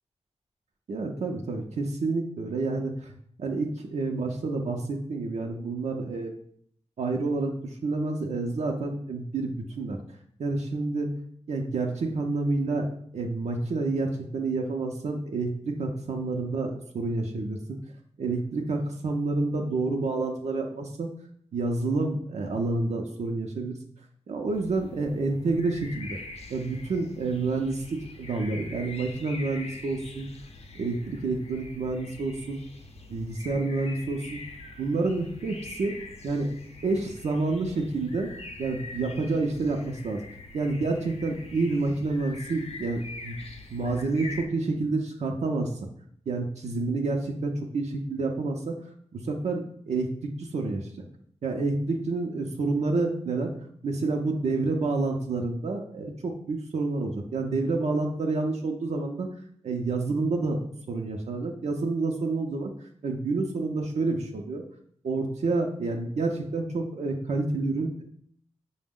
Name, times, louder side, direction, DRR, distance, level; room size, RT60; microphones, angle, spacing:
voice 1, 0.9-3.1 3.4-6.3 7.0-10.0 10.4-11.1 11.5-12.9 13.1-17.8 18.2-21.1 21.5-23.7 24.3-26.2 26.5-30.3 30.8-32.6 33.1-34.4 34.8-36.0 36.2-36.5 36.8-40.3 40.5-43.4 43.7-45.7 46.3-48.8 49.1-50.1 50.4-50.9 51.4-53.5 53.8-59.3 59.6-60.6 60.9-62.7 63.0-64.6 65.0-68.0, right 3 dB, 75° right, 2 dB, 0.5 m, -29 dB
sound 1, 24.5-44.5, left 2 dB, 65° left, 0.6 m, -44 dB
4.9 x 2.1 x 3.6 m, 0.63 s
wide cardioid pair, 75°, 11 cm